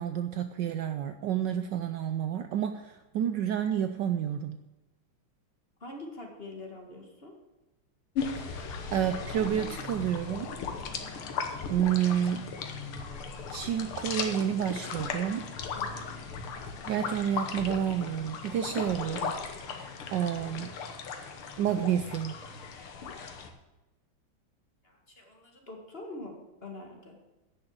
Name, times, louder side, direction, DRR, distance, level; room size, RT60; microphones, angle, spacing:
voice 1, 0.0-4.6 8.4-10.5 11.7-12.5 13.5-15.5 16.9-19.4 20.1-20.8 21.6-22.4, right 9 dB, 70° right, 9 dB, 1.1 m, -30 dB
voice 2, 5.8-7.3 15.7-16.2 24.8-27.2, left 2 dB, 30° left, 2 dB, 1.9 m, -44 dB
sound 1, 8.2-23.5, left 5 dB, 90° left, 2.1 m, -37 dB
sound 2, 9.5-20.7, left 2 dB, 65° left, 2.5 m, -52 dB
11.0 x 6.3 x 8.8 m, 1.0 s
omnidirectional pair, 2.3 m